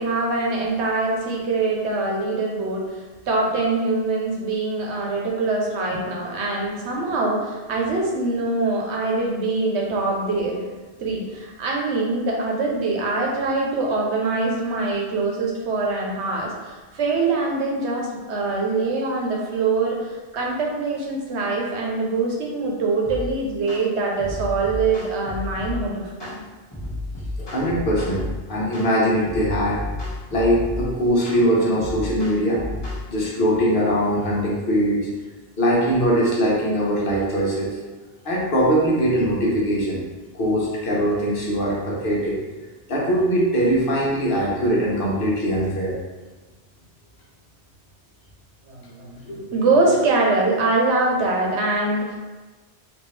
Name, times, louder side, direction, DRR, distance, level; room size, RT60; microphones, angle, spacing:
voice 1, 0.0-10.6 11.0-26.4 48.6-52.2, right 3 dB, 75° right, -1 dB, 1.0 m, -23 dB
sound 1, 23.0-23.3 23.7-23.9 24.2-25.8 26.2-26.4 26.7-28.3 28.7-28.9 29.2-30.8 31.3-31.4 31.8-33.0, left 1 dB, 25° left, 1.1 m, -32 dB
voice 2, 27.4-29.8 30.3-32.6 33.1-35.1 35.6-37.8 38.2-40.0 40.3-42.4 42.9-46.0 49.3-49.5, equal, 55° left, -4 dB, 1.1 m, -21 dB
3.5 x 2.7 x 3.2 m, 1.2 s
omnidirectional pair, 1.2 m